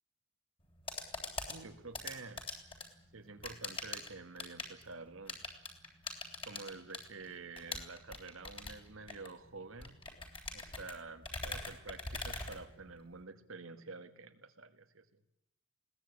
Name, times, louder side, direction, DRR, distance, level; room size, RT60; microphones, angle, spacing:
sound 1, 0.6-13.2, left 3 dB, 25° left, 3.4 m, -44 dB
voice 1, 1.5-2.4 3.1-5.4 6.4-10.0 10.5-15.1, right 3 dB, 80° right, 9 dB, 1.8 m, -49 dB
21.0 x 18.0 x 8.4 m, 0.87 s
head